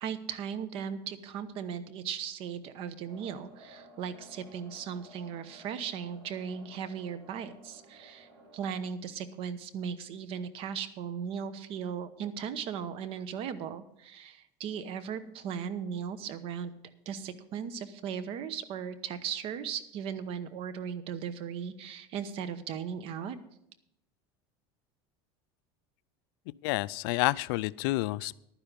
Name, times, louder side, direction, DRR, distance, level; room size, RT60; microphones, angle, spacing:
voice 1, 0.0-8.3 8.5-16.7 17.1-23.4, right 7 dB, 50° right, 14 dB, 1.0 m, -37 dB
sound 1, 3.1-8.8, right 1 dB, 75° right, 4.6 m, -55 dB
voice 2, 26.6-28.3, left 20 dB, 70° left, 20 dB, 0.4 m, -29 dB
11.5 x 10.0 x 5.2 m, 0.79 s
supercardioid pair, 140°, 12 cm